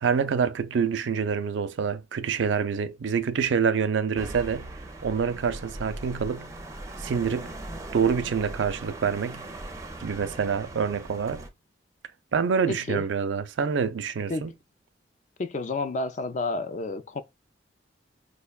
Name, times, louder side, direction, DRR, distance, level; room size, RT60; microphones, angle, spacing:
voice 1, 0.0-4.7 5.0-6.5 7.0-7.5 7.9-9.5 10.0-11.5 12.3-14.5, right 6 dB, 80° right, 0.4 m, -26 dB
sound 1, 4.2-11.5, right 2 dB, 15° right, 0.5 m, -40 dB
voice 2, 12.7-13.1 14.3-14.5 15.4-17.2, left 3 dB, 40° left, 0.4 m, -30 dB
4.9 x 2.2 x 2.3 m
head